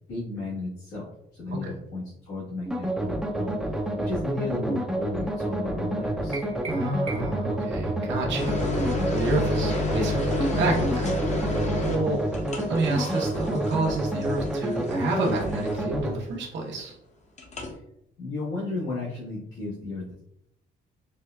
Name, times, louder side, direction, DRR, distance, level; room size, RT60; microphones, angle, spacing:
voice 1, 0.1-1.1 1.4-6.4 17.6-17.8 18.2-20.2, left 3 dB, 85° left, -9 dB, 1.2 m, -34 dB
sound 1, 2.7-16.1, right 1 dB, 5° right, 0.4 m, -29 dB
sound 2, 6.3-7.5, right 3 dB, 35° right, 0.7 m, -40 dB
voice 2, 6.7-12.2 12.7-17.0, right 2 dB, 65° right, -2 dB, 0.8 m, -29 dB
sound 3, 8.4-16.0 17.4-17.7, left 2 dB, 35° left, 0.7 m, -30 dB
4.4 x 2.2 x 2.2 m, 0.77 s
cardioid pair, 90°, 20 cm